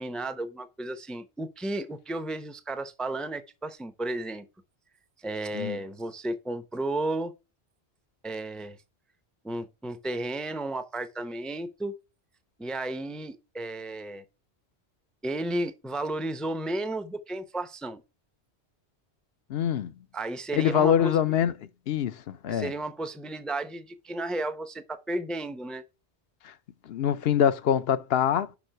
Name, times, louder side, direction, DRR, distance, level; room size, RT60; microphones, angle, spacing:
voice 1, 0.0-4.5 5.2-7.3 8.2-8.8 9.4-11.9 12.6-14.2 15.2-18.0 20.1-21.2 22.5-25.8, right 2 dB, ahead, 0.5 m, -33 dB
voice 2, 19.5-19.9 20.5-22.7 26.4-26.5 26.9-28.6, left 9 dB, 65° left, 0.9 m, -25 dB
6.0 x 5.4 x 6.6 m
omnidirectional pair, 1.1 m